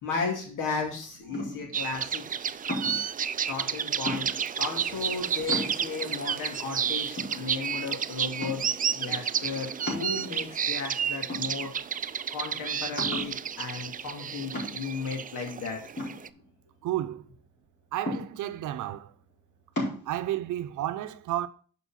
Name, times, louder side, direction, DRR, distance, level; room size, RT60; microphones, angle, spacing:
voice 1, 0.0-2.2 3.5-4.3 4.6-8.6 8.9-11.7 12.3-15.9, left 4 dB, 85° left, 2.6 m, -35 dB
sound 1, 1.3-1.8 2.7-3.1 4.0-4.6 5.1-5.2 5.5-6.1 6.7-6.8 7.2-7.9 8.4-8.8 9.9-10.6 11.3-11.9 12.3-12.4 13.0-13.4 14.5-15.0 16.0-16.9 18.1-18.6 19.8-20.0, left 1 dB, 35° left, 4.4 m, -35 dB
sound 2, 1.7-16.3, right 8 dB, 30° right, 0.4 m, -31 dB
voice 2, 16.8-17.3 17.9-19.1 20.1-21.5, right 13 dB, 75° right, 0.7 m, -31 dB
7.0 x 5.2 x 5.7 m
cardioid pair, 90°, 30 cm